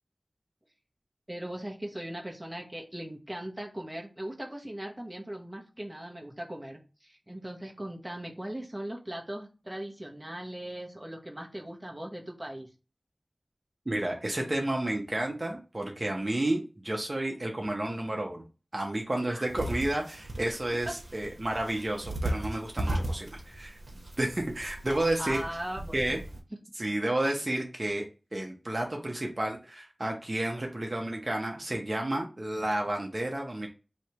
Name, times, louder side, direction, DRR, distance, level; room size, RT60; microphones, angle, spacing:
voice 1, 1.3-12.7 19.3-19.4 20.9-21.0 25.2-26.2, right 1 dB, 20° right, 0 dB, 0.9 m, -39 dB
voice 2, 13.9-18.4 18.7-23.8 24.2-25.4 25.9-26.2 26.8-28.0 28.3-33.7, right 1 dB, 45° right, 1 dB, 0.7 m, -31 dB
sound 1, 19.5-26.4, right 1 dB, 75° right, 0.9 m, -36 dB
3.2 x 2.8 x 4.3 m, 0.32 s
wide cardioid pair, 55°, 0 cm